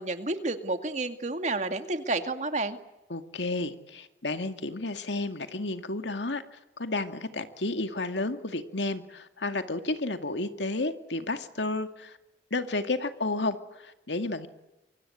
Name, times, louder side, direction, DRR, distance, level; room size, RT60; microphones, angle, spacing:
voice 1, 0.0-2.8, right 2 dB, 40° right, 7 dB, 2.2 m, -30 dB
voice 2, 3.1-12.2 12.5-14.5, left 2 dB, 85° left, 8 dB, 2.2 m, -32 dB
26.5 x 25.0 x 8.6 m, 0.95 s
head